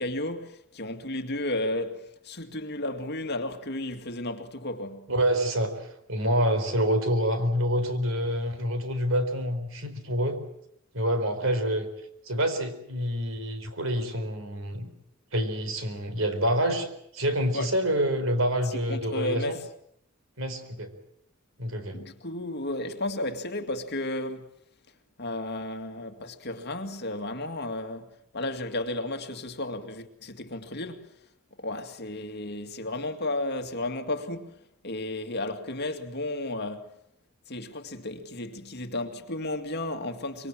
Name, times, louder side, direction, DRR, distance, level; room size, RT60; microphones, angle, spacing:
voice 1, 0.0-5.1 17.5-17.7 18.7-19.7 21.9-24.5 25.2-31.1 31.6-34.5 34.8-36.9 37.5-40.5, left 1 dB, 50° left, 2.3 m, -33 dB
voice 2, 5.1-10.4 10.9-11.9 12.2-14.9 15.3-19.6 20.4-20.9 21.6-22.0, equal, 65° right, 4.3 m, -27 dB
25.0 x 23.5 x 7.7 m
head